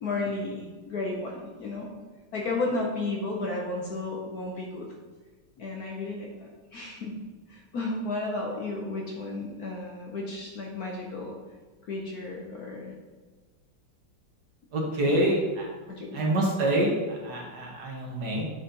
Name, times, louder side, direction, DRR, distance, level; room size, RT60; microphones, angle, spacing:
voice 1, 0.0-1.9 2.3-4.9 5.6-7.1 7.5-11.4 11.9-13.0 15.1-15.2 15.9-16.2, left 2 dB, 60° left, -1 dB, 1.1 m, -33 dB
voice 2, 14.7-15.7 16.1-18.4, right 1 dB, 55° right, -1 dB, 1.6 m, -26 dB
8.3 x 4.1 x 3.8 m, 1.3 s
omnidirectional pair, 2.2 m